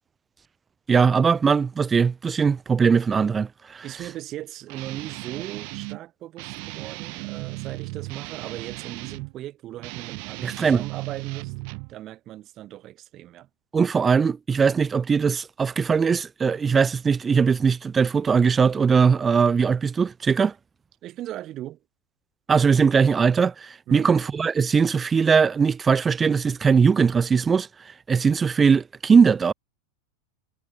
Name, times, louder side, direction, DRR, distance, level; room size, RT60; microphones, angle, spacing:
voice 1, 0.9-3.8 10.4-10.8 13.7-20.5 22.5-27.7 28.1-29.5, right 5 dB, 20° right, 0.8 m, -20 dB
voice 2, 3.8-11.5 11.9-13.5 21.0-21.8 23.9-24.1, right 14 dB, 40° right, 2.1 m, -38 dB
Guitar, 4.7-6.0 6.4-9.3 9.8-11.9, right 40 dB or more, 55° right, 2.9 m, -36 dB
supercardioid pair, 130°, 0 cm